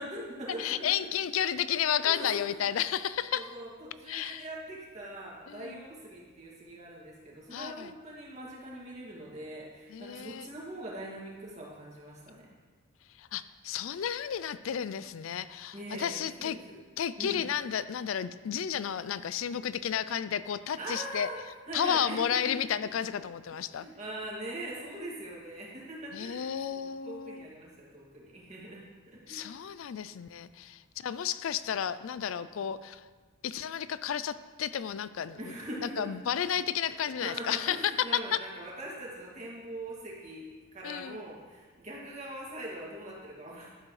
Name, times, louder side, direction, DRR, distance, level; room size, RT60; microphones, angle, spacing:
voice 1, 0.0-1.1 2.1-2.4 3.3-12.5 15.7-16.8 17.2-17.4 20.8-21.4 21.7-22.5 23.8-29.5 35.4-35.9 37.2-43.7, right 1 dB, 35° right, -5 dB, 2.3 m, -42 dB
voice 2, 0.6-3.5 4.1-4.4 5.5-5.8 7.5-7.9 9.9-10.5 13.2-16.6 17.0-21.3 21.7-23.9 26.1-27.5 29.3-33.1 33.4-35.6 35.8-38.2 40.8-41.2, left 9 dB, 75° left, 15 dB, 0.4 m, -32 dB
12.0 x 7.6 x 3.3 m, 1.4 s
head